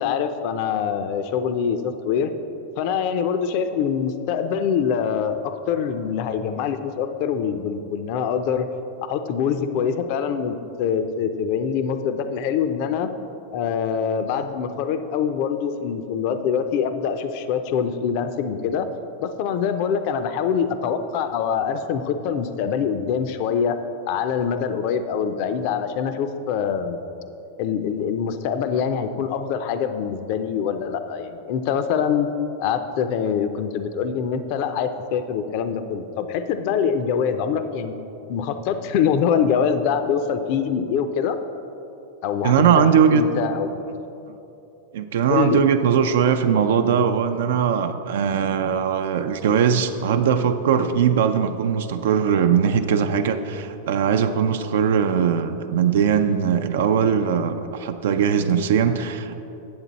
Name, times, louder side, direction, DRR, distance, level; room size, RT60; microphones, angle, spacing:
voice 1, 0.0-2.3 2.8-8.7 9.0-13.1 13.5-18.9 19.2-23.8 24.1-27.0 27.6-32.3 32.6-37.9 38.3-41.4 42.2-43.8 45.3-45.6, left 7 dB, 50° left, 9 dB, 0.5 m, -24 dB
voice 2, 42.4-43.2 44.9-59.3, right 7 dB, 75° right, 7 dB, 0.4 m, -20 dB
8.7 x 7.3 x 4.0 m, 2.9 s
supercardioid pair, 150°, 0 cm